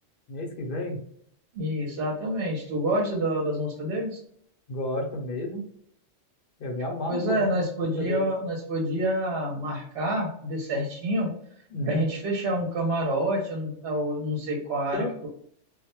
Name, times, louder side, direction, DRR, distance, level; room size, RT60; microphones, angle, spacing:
voice 1, 0.3-1.0 4.7-5.6 6.6-7.5 7.9-8.3 11.7-12.1 14.9-15.1, left 1 dB, 55° left, 1 dB, 0.7 m, -31 dB
voice 2, 1.5-4.2 7.1-11.3 11.8-15.3, right 1 dB, 65° right, -1 dB, 0.8 m, -28 dB
2.2 x 2.1 x 2.9 m, 0.68 s
omnidirectional pair, 1.3 m